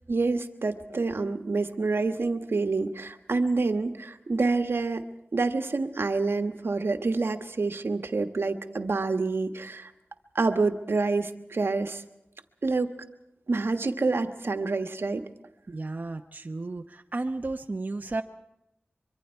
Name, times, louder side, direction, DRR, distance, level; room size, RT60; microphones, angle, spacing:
voice 1, 0.1-5.0 5.3-9.9 10.3-12.0 12.6-12.9 13.5-15.2, right 3 dB, 75° right, 8 dB, 1.3 m, -27 dB
voice 2, 15.7-18.2, right 2 dB, 45° right, 4 dB, 0.9 m, -33 dB
25.0 x 23.5 x 4.5 m, 0.87 s
wide cardioid pair, 70°, 4 cm